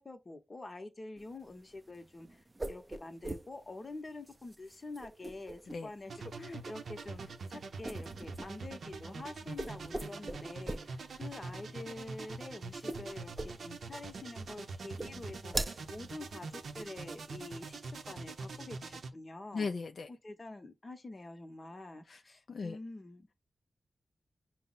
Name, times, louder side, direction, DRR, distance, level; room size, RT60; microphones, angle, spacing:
voice 1, 0.0-19.7 20.1-23.3, left 2 dB, 35° left, 0.7 m, -47 dB
sound 1, 1.2-16.7, right 1 dB, 20° right, 0.4 m, -44 dB
sound 2, 6.1-19.1, right 4 dB, 80° right, 0.6 m, -44 dB
voice 2, 19.5-20.1 22.1-22.2 22.5-22.8, left 4 dB, 65° left, 0.3 m, -37 dB
5.5 x 2.0 x 3.8 m
wide cardioid pair, 125°, 0 cm